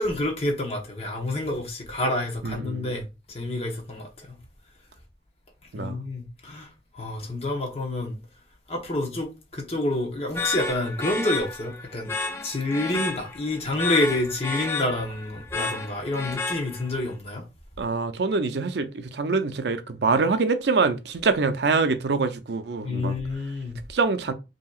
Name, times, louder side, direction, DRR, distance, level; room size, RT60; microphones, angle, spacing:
voice 1, 0.0-4.4 5.7-8.2 8.7-17.4 22.8-23.8, left 1 dB, 35° left, 1.1 m, -28 dB
voice 2, 2.4-2.9 5.7-6.0 17.8-23.1 23.9-24.3, right 4 dB, 70° right, 0.5 m, -25 dB
sound 1, 10.3-17.1, left 4 dB, 15° left, 0.5 m, -32 dB
5.5 x 2.9 x 2.4 m
head